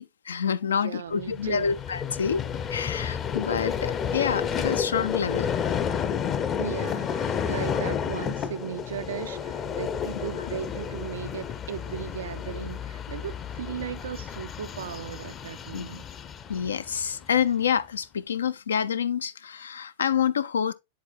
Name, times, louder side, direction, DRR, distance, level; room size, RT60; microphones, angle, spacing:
voice 1, 0.0-5.5 15.7-15.9 16.5-20.7, left 7 dB, 70° left, 0.4 m, -27 dB
voice 2, 0.7-1.8 6.6-16.0, right 9 dB, 65° right, 0.4 m, -36 dB
Vehicle, 1.2-17.5, left 7 dB, 25° left, 0.6 m, -31 dB
10.5 x 3.9 x 2.5 m
figure-of-eight pair, 95°, 0 cm